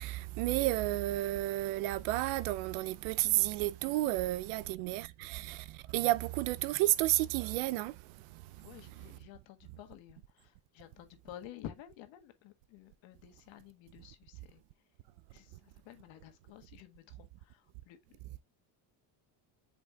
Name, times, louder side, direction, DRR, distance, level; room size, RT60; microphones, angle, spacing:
voice 1, 0.0-5.6 5.9-7.9, right 17 dB, 90° right, 0.7 m, -31 dB
voice 2, 8.6-14.6 15.3-18.2, left 12 dB, 70° left, 1.7 m, -52 dB
8.4 x 5.0 x 2.3 m
cardioid pair, 120°, 47 cm